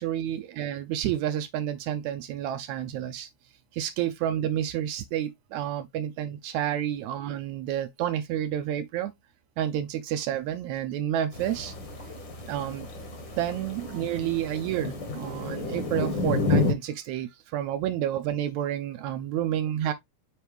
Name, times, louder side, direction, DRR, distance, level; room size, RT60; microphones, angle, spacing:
voice 1, 0.0-3.3 3.7-9.1 9.6-11.7 12.5-12.9 13.4-19.9, right 11 dB, 80° right, 1.8 m, -30 dB
sound 1, 11.3-16.7, left 3 dB, 50° left, 1.7 m, -30 dB
7.2 x 4.6 x 3.3 m
omnidirectional pair, 3.5 m